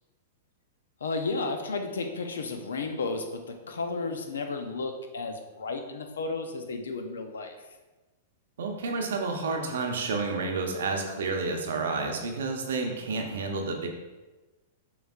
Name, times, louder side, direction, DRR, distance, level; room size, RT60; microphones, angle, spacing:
voice 1, 1.0-7.6, left 3 dB, 85° left, 5 dB, 0.6 m, -33 dB
voice 2, 8.6-13.9, right 3 dB, 75° right, 3 dB, 0.8 m, -30 dB
6.1 x 3.2 x 2.4 m, 1.2 s
hypercardioid pair, 115°, 0 cm